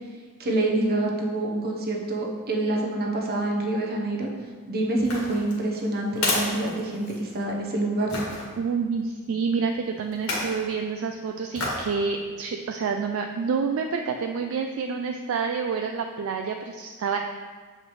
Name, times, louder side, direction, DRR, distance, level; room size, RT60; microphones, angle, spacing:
voice 1, 0.4-4.3 4.7-8.1, right 2 dB, 45° right, 0 dB, 0.9 m, -26 dB
sound 1, 5.0-7.4 8.1-8.4 10.1-10.6 11.5-11.9 12.4-12.5, left 2 dB, 70° left, 1.7 m, -30 dB
voice 2, 8.6-17.2, right 5 dB, 65° right, 4 dB, 0.3 m, -28 dB
7.3 x 4.9 x 3.1 m, 1.5 s
head